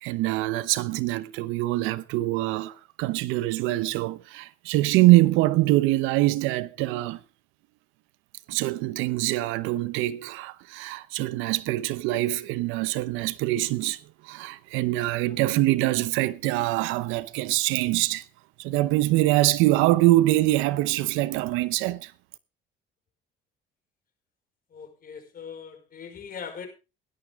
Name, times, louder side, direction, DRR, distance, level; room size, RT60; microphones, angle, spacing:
voice 1, 0.0-7.2 8.5-14.0 14.2-18.2 18.6-22.1, right 17 dB, 85° right, 0.9 m, -24 dB
voice 2, 24.7-26.7, left 6 dB, 45° left, 5.5 m, -40 dB
16.5 x 12.0 x 3.6 m
supercardioid pair, 90°, 20 cm